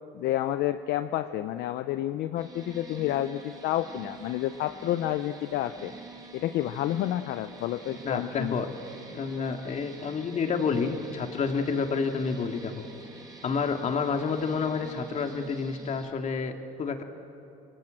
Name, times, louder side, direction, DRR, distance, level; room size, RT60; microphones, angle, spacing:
voice 1, 0.1-5.9 6.3-8.6, left 13 dB, 65° left, 11 dB, 0.7 m, -30 dB
sound 1, 2.4-16.1, right 2 dB, 20° right, 4.4 m, -47 dB
voice 2, 8.0-8.7 9.1-12.7 13.4-17.0, left 5 dB, 40° left, 5 dB, 2.3 m, -29 dB
27.0 x 22.5 x 7.8 m, 2.7 s
cardioid pair, 115°, 18 cm